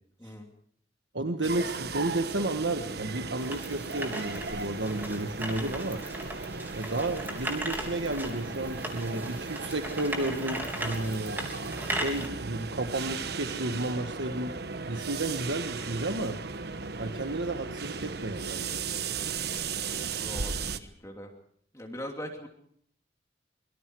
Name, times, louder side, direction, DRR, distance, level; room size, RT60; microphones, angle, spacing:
voice 1, 1.1-6.0 6.7-11.5 11.8-14.5 14.9-16.4 17.0-18.8, right 2 dB, 80° right, 5 dB, 1.6 m, -32 dB
sound 1, 1.4-20.8, right 4 dB, 60° right, 1.2 m, -36 dB
sound 2, 3.4-12.3, right 1 dB, 10° right, 3.6 m, -38 dB
voice 2, 20.1-21.3 21.7-22.5, left 1 dB, 15° left, 2 dB, 2.9 m, -41 dB
25.0 x 23.5 x 4.7 m, 0.66 s
head